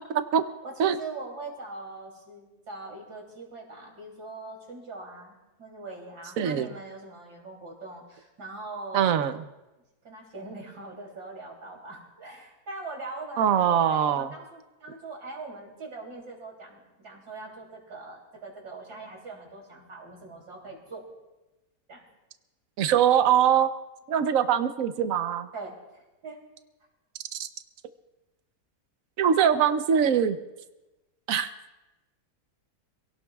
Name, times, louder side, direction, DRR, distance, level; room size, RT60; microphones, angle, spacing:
voice 1, 0.6-9.1 10.0-21.0 21.9-22.0 25.5-26.4, right 3 dB, 90° right, 0 dB, 3.7 m, -42 dB
voice 2, 6.4-6.7 8.9-9.4 13.4-14.3 22.8-23.7 24.1-25.5 27.3-27.5 29.2-30.4 31.3-31.5, right 8 dB, 60° right, 10 dB, 1.2 m, -22 dB
26.0 x 17.5 x 2.4 m, 1.0 s
omnidirectional pair, 1.7 m